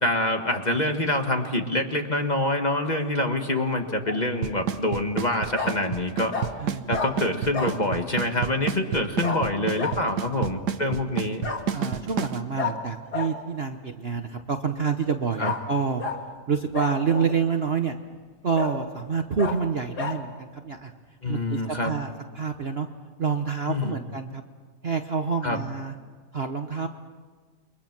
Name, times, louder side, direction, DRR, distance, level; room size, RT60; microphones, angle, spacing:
voice 1, 0.0-6.4 6.9-11.4 15.4-15.5 21.2-21.9 23.7-24.0 25.4-25.6, left 1 dB, 25° left, 4 dB, 1.7 m, -26 dB
Bark, 3.8-4.2 5.5-5.7 6.3-6.5 6.9-7.1 7.5-7.8 9.2-9.4 9.8-10.0 11.4-11.6 12.6-12.7 13.1-13.3 15.4-15.6 16.0-16.2 16.7-17.4 17.9-18.0 18.5-18.7 19.4-19.5 20.0-20.1, left 5 dB, 70° left, 2.5 m, -30 dB
Drum kit / Snare drum / Bass drum, 4.4-12.4, right 8 dB, 75° right, 1.6 m, -28 dB
voice 2, 6.6-7.0 11.7-16.0 16.5-18.0 18.4-20.9 21.3-22.9 23.2-24.4 24.8-25.9 26.3-26.9, right 5 dB, 45° right, 6 dB, 1.1 m, -27 dB
29.0 x 24.0 x 6.0 m, 1.4 s
omnidirectional pair, 1.8 m